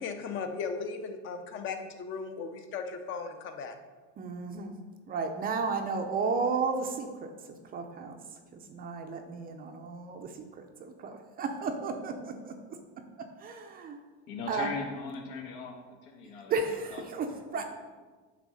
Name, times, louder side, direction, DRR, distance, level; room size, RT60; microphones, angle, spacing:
voice 1, 0.0-3.8, left 5 dB, 35° left, 7 dB, 0.7 m, -37 dB
voice 2, 4.2-4.7 5.1-12.8 13.2-14.0 14.5-14.7 16.2-17.7, right 4 dB, 25° right, 5 dB, 0.5 m, -34 dB
voice 3, 14.3-16.5 16.9-17.0 17.5-17.7, left 4 dB, 75° left, 2 dB, 1.6 m, -39 dB
9.1 x 3.6 x 6.2 m, 1.4 s
cardioid pair, 160°, 37 cm